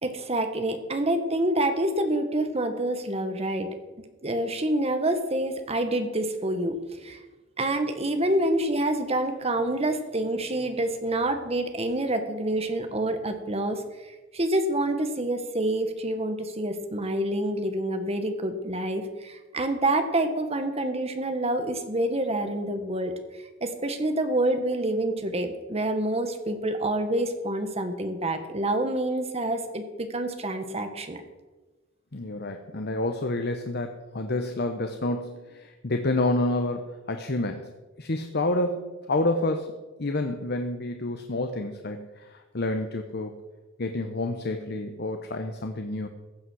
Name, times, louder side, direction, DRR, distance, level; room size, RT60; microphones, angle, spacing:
voice 1, 0.0-3.7 4.2-7.2 7.6-23.1 23.6-31.2, right 1 dB, 30° right, 7 dB, 1.5 m, -27 dB
voice 2, 32.1-37.7 38.0-39.7 40.0-43.4 43.8-46.1, left 2 dB, 55° left, 6 dB, 1.0 m, -29 dB
15.5 x 8.7 x 6.3 m, 1.2 s
head